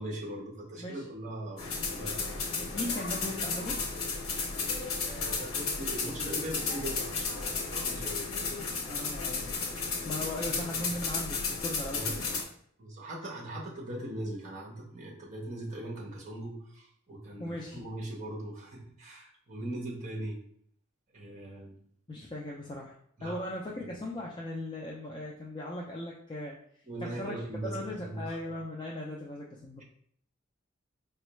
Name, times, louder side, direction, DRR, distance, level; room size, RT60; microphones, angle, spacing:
voice 1, 0.0-1.6 1.9-2.4 5.0-8.2 11.9-12.2 12.8-20.4 21.1-21.8 23.2-23.4 23.8-23.9 26.8-28.4, right 1 dB, 35° right, -3 dB, 1.0 m, -40 dB
sound 1, 1.6-12.4, left 4 dB, 85° left, 0.7 m, -33 dB
voice 2, 2.6-3.8 8.9-9.8 10.1-12.3 17.4-17.8 22.1-29.8, left 1 dB, 20° left, -4 dB, 0.3 m, -38 dB
4.1 x 2.2 x 3.1 m, 0.64 s
head